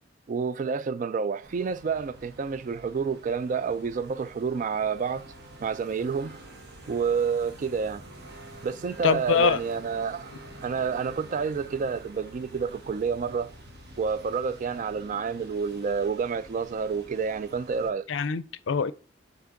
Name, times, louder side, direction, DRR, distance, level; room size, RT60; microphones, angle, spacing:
voice 1, 0.3-5.3 5.6-6.5 6.9-8.0 8.6-10.3 10.6-13.5 14.0-18.1, right 5 dB, 40° right, 0.3 m, -29 dB
sound 1, 1.4-17.9, right 1 dB, 60° right, 1.4 m, -48 dB
voice 2, 9.0-9.6 18.1-18.9, left 5 dB, 80° left, 0.4 m, -24 dB
5.9 x 4.4 x 3.8 m
head